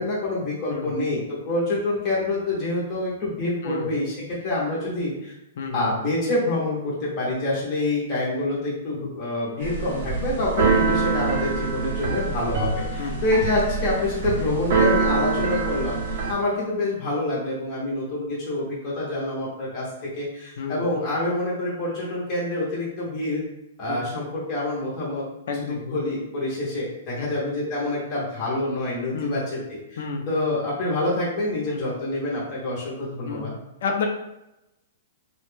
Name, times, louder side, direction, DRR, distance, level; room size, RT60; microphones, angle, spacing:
voice 1, 0.0-5.3 5.7-23.4 23.8-25.3 25.7-33.5, left 2 dB, 20° left, -6 dB, 0.7 m, -27 dB
voice 2, 5.6-5.9 10.8-11.0 13.0-13.2 20.6-20.9 23.9-24.0 25.5-25.8 27.2-27.3 29.1-29.4 30.0-30.2 31.7-31.8 33.2-33.5 33.8-34.1, left 5 dB, 55° left, 3 dB, 0.4 m, -30 dB
Keyboard (musical), 9.6-16.3, right 4 dB, 45° right, 0.5 m, -25 dB
2.5 x 2.1 x 3.1 m, 0.91 s
hypercardioid pair, 175°, 0 cm